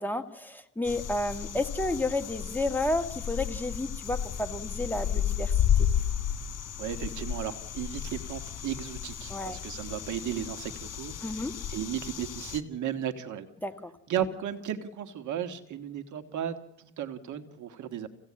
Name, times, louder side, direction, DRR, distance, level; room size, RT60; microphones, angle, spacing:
voice 1, 0.0-5.5 5.8-5.9 9.3-9.6 11.2-11.5 13.6-13.9, left 2 dB, 5° left, 6 dB, 1.7 m, -31 dB
sound 1, 0.8-12.6, left 9 dB, 55° left, 2.1 m, -32 dB
voice 2, 6.8-13.5 14.1-18.1, right 9 dB, 75° right, 9 dB, 1.7 m, -35 dB
27.5 x 16.5 x 8.6 m, 0.94 s
cardioid pair, 90°, 30 cm